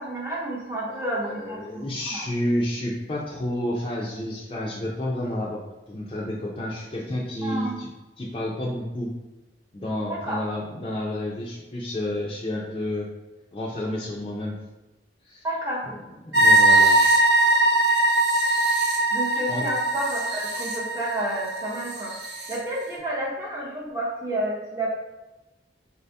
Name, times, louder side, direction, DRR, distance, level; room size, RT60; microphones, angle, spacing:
voice 1, 0.0-2.3 7.4-7.7 10.1-10.4 15.4-15.9 19.1-22.1 22.5-24.9, right 1 dB, 15° right, -5 dB, 0.6 m, -30 dB
voice 2, 0.9-5.6 5.9-7.9 8.2-9.1 9.7-13.1 13.5-14.6 15.3-15.5 16.2-16.9 19.5-19.6, left 1 dB, 30° left, -6 dB, 0.5 m, -30 dB
sound 1, 16.3-22.6, right 2 dB, 60° right, 0.8 m, -21 dB
4.2 x 2.7 x 3.3 m, 1.1 s
head